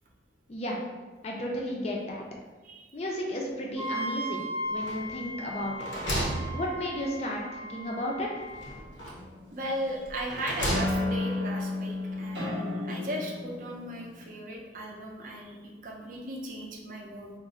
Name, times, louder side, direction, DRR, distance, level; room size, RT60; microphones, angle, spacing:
voice 1, 0.5-0.8 1.2-2.2 2.9-5.9 6.5-8.3, left 1 dB, 35° left, -1 dB, 0.4 m, -33 dB
Wind instrument woodwind instrument, 3.8-8.7, right 1 dB, 5° right, 0.6 m, -37 dB
sound 1, 4.8-5.3 5.6-7.2 8.5-9.4 10.0-11.3, equal, 85° left, 0.6 m, -34 dB
sound 2, 9.2-10.0 10.7-14.3, left 2 dB, 80° right, 0.7 m, -32 dB
voice 2, 9.5-17.3, right 1 dB, 45° right, -1 dB, 0.4 m, -37 dB
2.4 x 2.0 x 3.8 m, 1.3 s
head